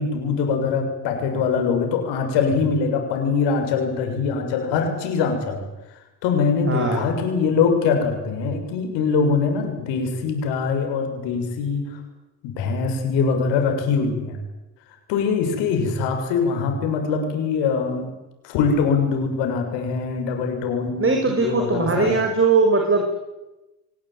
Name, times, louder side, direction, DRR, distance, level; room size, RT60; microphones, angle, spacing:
voice 1, 0.0-5.6 6.2-11.8 12.4-14.4 15.1-18.1 18.4-22.2, left 5 dB, 80° left, 5 dB, 7.0 m, -23 dB
voice 2, 6.7-7.1 21.0-23.2, right 3 dB, 30° right, 3 dB, 6.5 m, -20 dB
24.5 x 19.0 x 9.2 m, 1.0 s
supercardioid pair, 75°, 42 cm